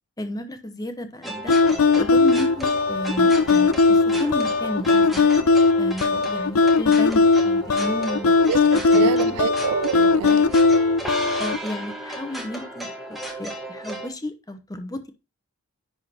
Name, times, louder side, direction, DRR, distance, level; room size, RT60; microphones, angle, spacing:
voice 1, 0.2-1.6 1.9-5.3 5.8-8.3 8.7-9.3 11.4-15.1, left 1 dB, 15° left, 0.9 m, -32 dB
sound 1, 1.2-14.1, right 1 dB, ahead, 1.3 m, -34 dB
sound 2, 1.5-11.6, left 4 dB, 70° left, 0.5 m, -18 dB
voice 2, 8.5-10.6, right 9 dB, 90° right, 0.3 m, -27 dB
10.5 x 3.7 x 4.3 m
head